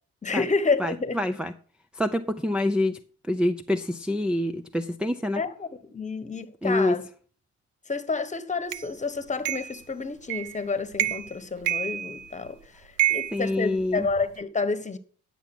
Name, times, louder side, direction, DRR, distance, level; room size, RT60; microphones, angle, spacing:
voice 1, 0.2-1.2 5.4-7.0 7.9-15.0, left 4 dB, 25° left, 1.4 m, -29 dB
voice 2, 0.8-1.5 2.0-3.0 3.3-5.4 6.6-7.0 13.3-14.1, left 1 dB, 5° right, 0.6 m, -26 dB
sound 1, 8.7-8.8 9.4-9.8 10.3-10.6 10.9-11.3 11.7-12.5 13.0-14.2, right 12 dB, 85° right, 0.8 m, -28 dB
10.5 x 7.1 x 6.1 m
cardioid pair, 90°, 30 cm